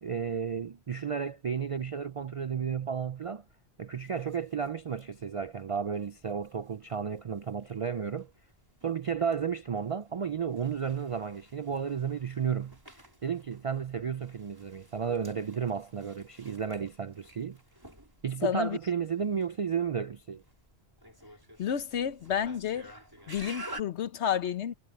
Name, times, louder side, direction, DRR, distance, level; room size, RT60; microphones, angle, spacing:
voice 1, 0.0-3.4 3.8-8.3 8.8-12.8 13.2-17.6 18.2-20.4, right 7 dB, 60° right, 0.3 m, -33 dB
sound 1, 4.0-23.8, right 1 dB, 20° right, 4.3 m, -52 dB
voice 2, 18.4-18.8 21.6-22.9 23.3-24.7, left 9 dB, 80° left, 1.1 m, -30 dB
omnidirectional pair, 1.1 m